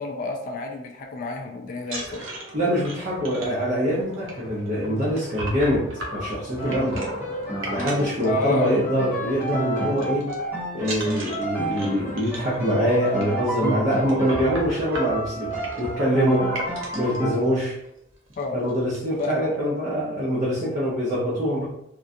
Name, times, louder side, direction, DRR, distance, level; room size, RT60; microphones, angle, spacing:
voice 1, 0.0-2.3 4.8-5.0 6.6-6.9 8.2-8.8 16.1-16.4 18.4-18.6 19.2-19.5, left 2 dB, 45° left, 2 dB, 0.3 m, -30 dB
sound 1, 1.8-8.9 9.2-9.5 9.8-10.3 10.8-17.2 17.8-17.9 18.3-18.4 18.7-19.2, right 1 dB, 90° right, 0.8 m, -36 dB
voice 2, 2.5-5.8 6.1-7.1 7.7-10.3 10.7-16.5 17.0-17.8 18.5-21.6, equal, 45° right, -7 dB, 0.7 m, -24 dB
Piano, 6.6-14.6 14.9-17.3, right 1 dB, 10° right, 1.0 m, -30 dB
3.6 x 2.3 x 2.6 m, 0.78 s
head